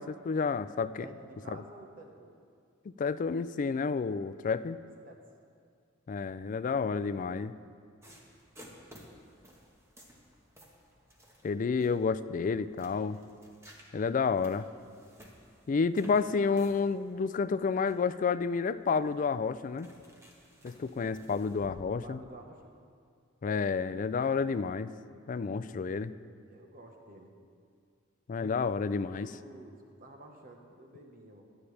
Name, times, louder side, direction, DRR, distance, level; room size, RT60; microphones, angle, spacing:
voice 1, 0.0-1.1 3.0-4.8 6.1-7.5 11.4-13.2 13.9-14.7 15.7-19.9 20.6-22.2 23.4-24.9 25.3-26.1 28.3-29.3, left 5 dB, 40° left, 14 dB, 0.3 m, -30 dB
voice 2, 1.0-2.4 4.8-5.2 22.0-22.7 26.5-27.3 29.0-31.4, right 1 dB, 45° right, 2 dB, 1.1 m, -51 dB
sound 1, 8.0-21.7, equal, 15° right, 1.3 m, -56 dB
17.0 x 11.5 x 3.3 m, 2.2 s
head